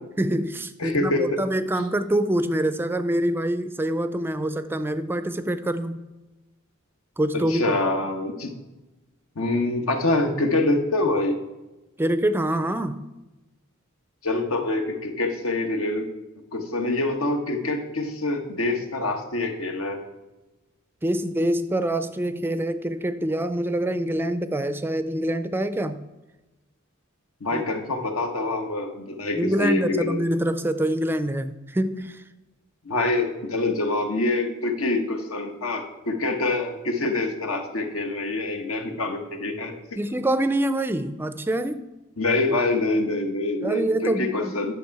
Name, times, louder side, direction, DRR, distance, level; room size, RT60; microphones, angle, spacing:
voice 1, 0.2-6.0 7.2-7.7 12.0-13.1 21.0-26.0 27.5-27.6 29.3-32.2 40.0-41.9 43.6-44.5, right 1 dB, 10° right, 12 dB, 0.3 m, -25 dB
voice 2, 0.8-1.4 7.5-8.5 9.3-11.4 14.2-16.1 16.5-20.0 27.4-30.2 32.8-39.8 42.2-44.7, left 2 dB, 90° left, 4 dB, 1.3 m, -25 dB
10.0 x 6.9 x 4.7 m, 1.1 s
head